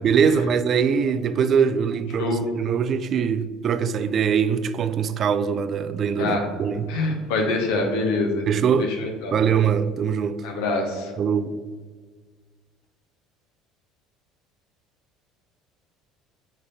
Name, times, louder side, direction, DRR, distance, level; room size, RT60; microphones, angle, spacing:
voice 1, 0.0-6.9 8.5-8.9 9.3-10.5 11.2-11.5, right 7 dB, 50° right, 0.3 m, -22 dB
voice 2, 6.9-8.4 8.8-9.4 10.4-11.1, left 3 dB, 75° left, 0.7 m, -25 dB
3.9 x 3.5 x 4.0 m
hypercardioid pair, 70°, 0 cm